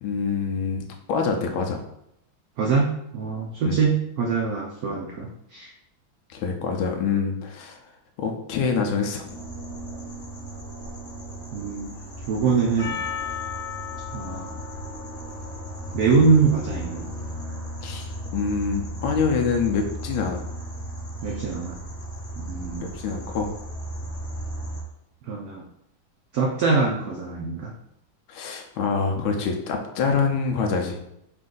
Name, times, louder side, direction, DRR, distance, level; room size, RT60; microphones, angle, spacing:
voice 1, 0.0-1.8 3.6-3.8 6.3-7.8 8.2-9.3 17.8-20.4 22.8-23.5 28.3-31.1, left 5 dB, 85° left, 3 dB, 1.4 m, -26 dB
voice 2, 2.6-5.7 11.5-11.9 12.3-13.0 14.1-14.6 15.9-17.1 21.2-21.8 22.4-22.9 25.2-25.6 26.3-27.7, right 4 dB, 80° right, -1 dB, 0.8 m, -23 dB
sound 1, 9.2-24.8, equal, 30° left, 1.6 m, -36 dB
Percussion, 12.8-17.3, left 8 dB, 65° left, 0.4 m, -37 dB
4.3 x 2.5 x 3.8 m, 0.80 s
omnidirectional pair, 2.2 m